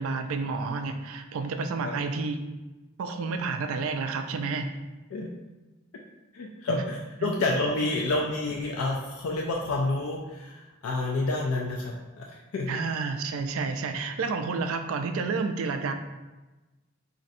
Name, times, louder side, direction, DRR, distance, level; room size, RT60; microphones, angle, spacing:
voice 1, 0.0-2.4 3.0-4.7 6.7-6.8 7.2-7.3 12.7-15.9, right 4 dB, 70° right, 7 dB, 0.3 m, -30 dB
voice 2, 6.3-12.7, left 2 dB, 70° left, -1 dB, 0.3 m, -29 dB
4.0 x 2.5 x 2.6 m, 1.1 s
head